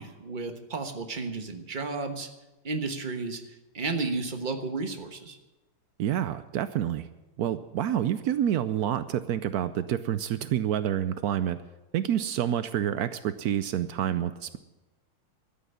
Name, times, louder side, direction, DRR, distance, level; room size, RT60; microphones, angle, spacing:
voice 1, 0.0-2.3 2.6-3.4 3.7-5.4, right 3 dB, 30° right, 7 dB, 1.2 m, -32 dB
voice 2, 6.0-7.1 7.4-11.6 11.9-14.6, right 10 dB, 90° right, 13 dB, 0.8 m, -28 dB
13.5 x 9.1 x 9.9 m, 1.0 s
omnidirectional pair, 2.3 m